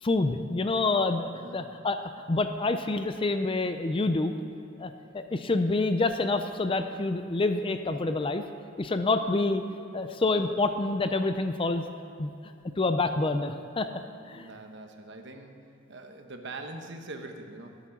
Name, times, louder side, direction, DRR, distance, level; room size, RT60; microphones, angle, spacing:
voice 1, 0.0-4.3 4.8-8.4 8.8-9.6 9.9-11.8 12.2-12.3 12.8-13.9 14.3-14.5, left 3 dB, 25° left, 8 dB, 0.4 m, -27 dB
voice 2, 14.3-15.5 15.9-17.8, right 2 dB, 60° right, 4 dB, 1.0 m, -43 dB
12.5 x 8.3 x 5.9 m, 2.5 s
head